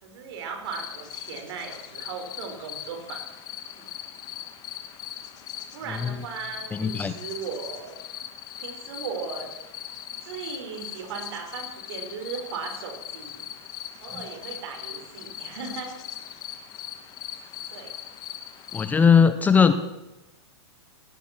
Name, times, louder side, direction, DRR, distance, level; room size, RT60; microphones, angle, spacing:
voice 1, 0.0-3.2 3.7-3.9 5.7-8.0 8.6-9.5 10.2-13.5 14.0-16.0 17.7-17.9, right 6 dB, 60° right, 4 dB, 4.7 m, -37 dB
sound 1, 0.6-19.1, left 10 dB, 25° left, 1.4 m, -40 dB
voice 2, 6.7-7.1 14.1-14.2 18.7-19.7, left 6 dB, 10° left, 10 dB, 0.7 m, -19 dB
17.5 x 12.0 x 6.0 m, 1.0 s
supercardioid pair, 150°, 15 cm